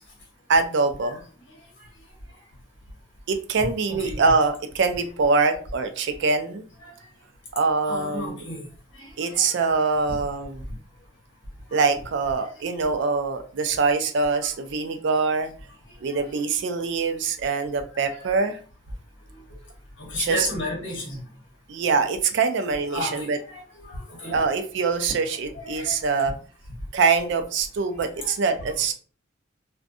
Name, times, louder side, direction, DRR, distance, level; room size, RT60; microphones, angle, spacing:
voice 1, 0.5-1.2 3.3-6.6 7.5-8.4 9.2-10.6 11.7-15.5 16.0-18.6 20.2-20.5 21.7-23.4 24.3-26.3 26.9-28.9, right 4 dB, 65° right, 7 dB, 0.4 m, -24 dB
voice 2, 7.9-8.6 9.0-9.4 11.7-11.8 20.1-21.2 22.9-24.4 25.5-25.9 28.2-28.3, left 1 dB, 65° left, -2 dB, 1.1 m, -33 dB
2.4 x 2.2 x 2.6 m, 0.40 s
head